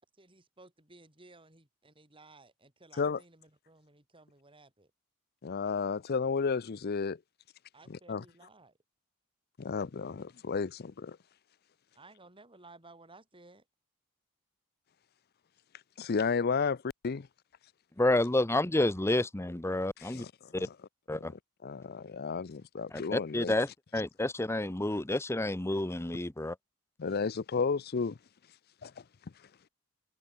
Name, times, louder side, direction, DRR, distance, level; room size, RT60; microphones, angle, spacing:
voice 1, 0.2-4.9 7.7-8.8 11.9-13.6, right 2 dB, 25° right, 4.9 m, -57 dB
voice 2, 5.4-7.2 7.9-8.2 9.6-11.2 16.0-17.3 20.0-20.7 21.1-21.3 21.6-23.5 27.0-28.2 28.8-28.9, left 5 dB, 45° left, 0.5 m, -33 dB
voice 3, 18.0-20.2 20.5-20.7 21.1-21.3 23.1-26.5, left 1 dB, 10° left, 0.7 m, -29 dB
head